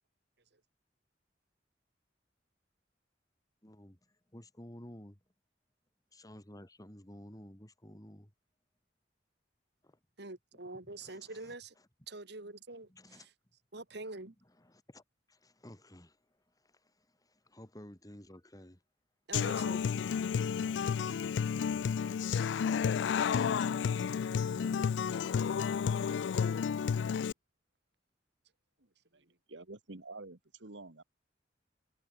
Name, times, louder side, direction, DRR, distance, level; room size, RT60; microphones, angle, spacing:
voice 1, 3.6-4.0 4.3-5.2 6.1-8.3 9.8-10.0 11.0-11.9 12.9-13.3 14.0-14.1 14.5-15.0 15.3-16.2 16.6-18.8 24.6-24.9, left 1 dB, 20° left, 3.2 m, -54 dB
voice 2, 10.2-11.7 12.1-13.3 13.7-14.3 19.3-19.8, right 2 dB, 65° right, 2.8 m, -45 dB
Human voice / Acoustic guitar, 19.3-27.3, left 7 dB, 75° left, 0.3 m, -31 dB
voice 3, 29.1-31.0, right 2 dB, 85° right, 1.9 m, -49 dB
head